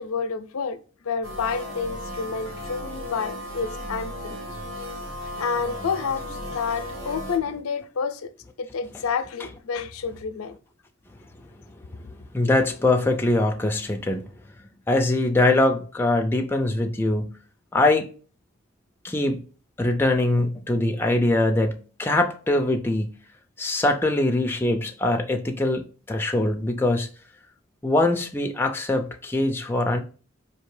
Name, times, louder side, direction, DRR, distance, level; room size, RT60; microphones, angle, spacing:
voice 1, 0.0-4.4 5.4-8.3 8.6-10.5 11.9-12.1, left 5 dB, 90° left, 0.5 m, -29 dB
sound 1, 1.2-7.4, equal, 70° right, 0.8 m, -35 dB
voice 2, 12.0-14.3 14.9-17.4 17.7-18.1 19.0-19.4 19.8-23.1 23.6-27.1 27.8-30.0, left 2 dB, 10° left, 0.4 m, -23 dB
4.4 x 2.8 x 3.1 m
head